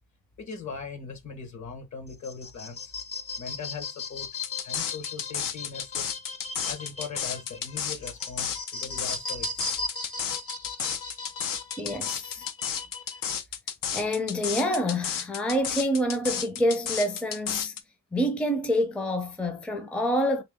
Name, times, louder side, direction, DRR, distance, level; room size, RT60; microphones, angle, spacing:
voice 1, 0.4-2.9 3.4-4.3 4.6-6.1 6.6-9.6, left 5 dB, 60° left, 1.2 m, -40 dB
sound 1, 2.1-13.4, left 3 dB, 45° left, 0.7 m, -38 dB
sound 2, 4.4-17.8, left 8 dB, 90° left, 0.7 m, -32 dB
voice 2, 11.8-12.5 13.9-17.8 18.1-20.4, equal, 5° left, 0.5 m, -27 dB
3.3 x 2.9 x 3.5 m
wide cardioid pair, 120°, 32 cm